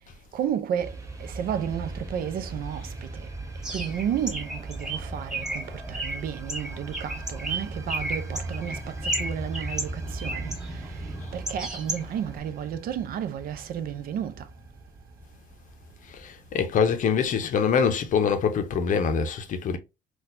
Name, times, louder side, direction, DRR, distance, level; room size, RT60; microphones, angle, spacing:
voice 1, 0.3-3.3 3.7-14.5, right 9 dB, 60° right, 0.5 m, -32 dB
sound 1, 0.8-16.5, right 2 dB, 20° right, 0.8 m, -39 dB
Bird, 3.6-12.4, right 1 dB, 5° right, 1.4 m, -34 dB
voice 2, 16.2-19.8, left 6 dB, 50° left, 0.6 m, -24 dB
4.0 x 2.3 x 2.5 m
cardioid pair, 110°, 17 cm